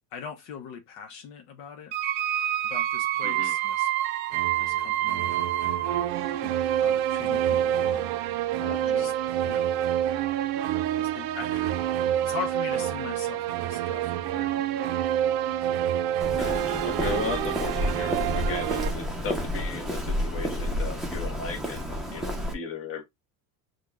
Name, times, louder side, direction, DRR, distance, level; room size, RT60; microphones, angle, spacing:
voice 1, 0.1-1.9 2.6-3.9 4.6-5.8 6.4-8.1 8.8-9.1 9.4-9.8 11.0-11.7 12.2-15.0 15.4-15.7, left 7 dB, 65° left, 0.8 m, -41 dB
sound 1, 1.9-18.9, right 11 dB, 65° right, 0.6 m, -27 dB
voice 2, 3.2-3.5 8.6-9.1 16.3-23.0, left 4 dB, 30° left, 1.2 m, -36 dB
Walk footsteps, 16.2-22.5, equal, ahead, 0.6 m, -30 dB
6.3 x 2.3 x 2.3 m
supercardioid pair, 120°, 44 cm